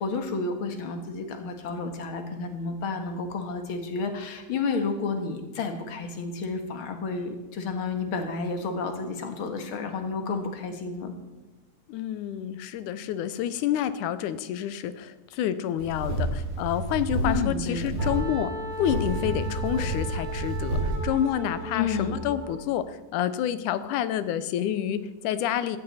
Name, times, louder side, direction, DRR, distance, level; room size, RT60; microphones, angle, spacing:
voice 1, 0.0-11.1 17.2-18.0 21.7-22.2, left 4 dB, 50° left, 6 dB, 2.0 m, -31 dB
voice 2, 11.9-18.5 18.8-25.8, left 10 dB, 85° left, 13 dB, 2.2 m, -28 dB
sound 1, 15.8-17.5 17.7-18.2 18.7-21.0, right 2 dB, 75° right, 5.2 m, -29 dB
sound 2, 17.7-22.8, right 3 dB, 30° left, 3.4 m, -41 dB
Wind instrument woodwind instrument, 18.0-22.6, equal, 65° left, 6.9 m, -38 dB
16.0 x 13.5 x 4.2 m, 1.1 s
omnidirectional pair, 3.5 m